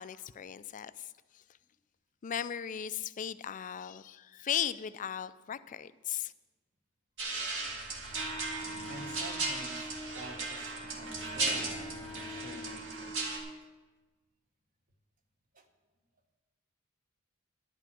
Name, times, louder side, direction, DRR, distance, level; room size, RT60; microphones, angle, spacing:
voice 1, 0.0-1.4 2.2-6.3, left 9 dB, 35° left, 15 dB, 0.3 m, -37 dB
sound 1, 7.2-13.4, right 3 dB, 60° right, 1.8 m, -36 dB
Wind instrument woodwind instrument, 8.1-13.6, equal, 15° left, 0.8 m, -45 dB
voice 2, 8.9-13.1 15.5-15.6, right 1 dB, 40° right, 5 dB, 1.2 m, -48 dB
10.5 x 5.9 x 8.3 m, 1.2 s
head